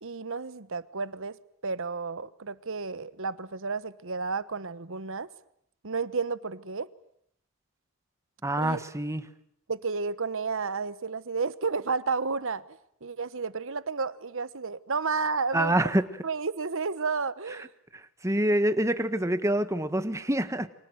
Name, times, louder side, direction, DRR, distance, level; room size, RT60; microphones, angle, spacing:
voice 1, 0.0-1.4 1.6-5.3 5.8-6.9 8.6-8.8 9.7-15.9 16.2-17.7, right 4 dB, 60° right, 1.1 m, -32 dB
voice 2, 8.4-9.2 15.5-16.1 17.9-20.7, right 1 dB, 15° right, 1.5 m, -26 dB
29.5 x 25.5 x 7.9 m
head